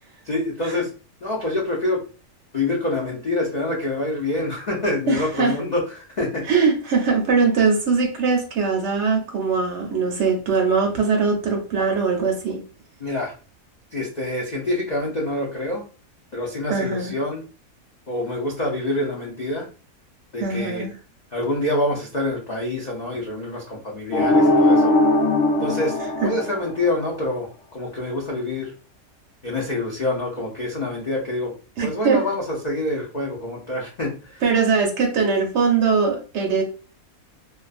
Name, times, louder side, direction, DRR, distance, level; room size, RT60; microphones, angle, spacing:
voice 1, 0.2-0.9 1.2-2.0 2.5-6.4 13.0-13.4 13.9-15.8 16.3-17.4 18.1-19.7 20.3-20.8 21.3-25.0 25.6-28.7 29.4-31.5 31.8-34.4, left 2 dB, 85° left, -3 dB, 0.3 m, -26 dB
voice 2, 5.1-5.5 6.5-12.6 16.7-17.1 20.4-20.9 26.2-26.3 31.8-32.2 34.4-36.6, right 5 dB, 65° right, 3 dB, 0.8 m, -21 dB
sound 1, 24.1-27.1, left 1 dB, 70° left, 0.8 m, -19 dB
2.4 x 2.3 x 2.4 m, 0.36 s
omnidirectional pair, 1.5 m